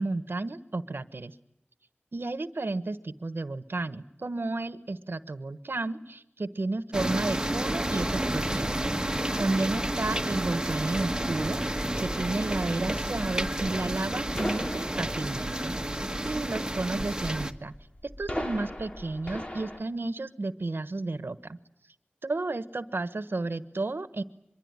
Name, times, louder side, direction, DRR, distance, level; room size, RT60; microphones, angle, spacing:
voice 1, 0.0-1.3 2.1-8.8 9.4-17.7 18.2-21.6 22.2-24.2, right 2 dB, 85° right, 13 dB, 1.2 m, -32 dB
sound 1, 6.9-17.5, right 1 dB, 20° right, 1.5 m, -30 dB
sound 2, 11.1-19.8, left 1 dB, 30° left, 2.7 m, -40 dB
sound 3, 11.4-16.5, equal, 15° left, 4.2 m, -54 dB
24.5 x 23.0 x 9.6 m, 0.79 s
wide cardioid pair, 50°, 4 cm